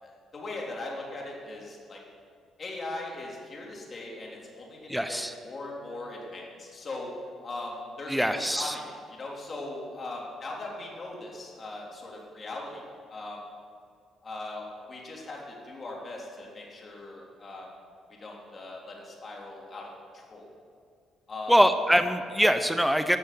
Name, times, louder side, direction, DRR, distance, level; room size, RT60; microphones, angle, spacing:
voice 1, 0.0-2.0 2.6-7.1 7.4-13.4 14.2-17.7 18.2-20.5 21.3-21.6, left 2 dB, 35° left, -2 dB, 3.4 m, -40 dB
voice 2, 4.9-5.3 8.1-8.8 21.5-23.2, equal, ahead, 8 dB, 0.6 m, -23 dB
13.5 x 6.9 x 9.3 m, 2.2 s
cardioid pair, 105°, 0 cm